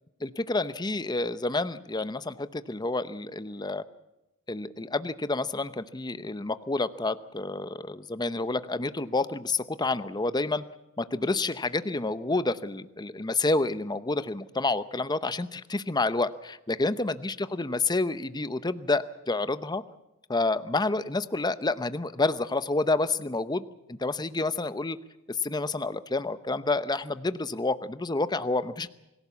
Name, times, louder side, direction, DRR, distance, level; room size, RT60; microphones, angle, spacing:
voice 1, 0.2-3.8 4.5-10.6 11.0-19.8 20.3-23.6 23.9-25.0 25.4-28.9, left 3 dB, 20° left, 13 dB, 0.8 m, -29 dB
25.5 x 16.5 x 7.3 m, 0.95 s
head